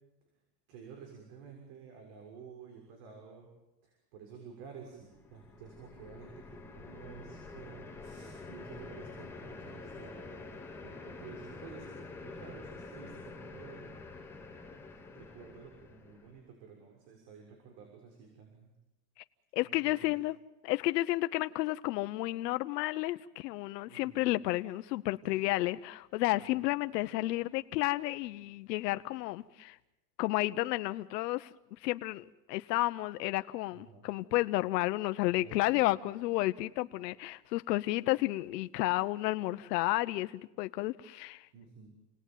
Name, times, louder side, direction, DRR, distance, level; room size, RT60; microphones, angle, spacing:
voice 1, 0.7-3.5 3.8-10.5 10.8-13.9 15.1-18.7 19.6-20.1 23.9-24.3 25.2-25.4 26.4-26.5 33.7-34.0 35.3-35.9 41.5-41.9, right 6 dB, 55° right, 6.8 m, -51 dB
sound 1, 5.0-16.4, left 3 dB, 5° left, 3.0 m, -47 dB
voice 2, 19.5-20.4 20.6-29.8 30.2-41.5, left 18 dB, 90° left, 1.0 m, -32 dB
29.5 x 20.0 x 9.3 m
supercardioid pair, 155°, 48 cm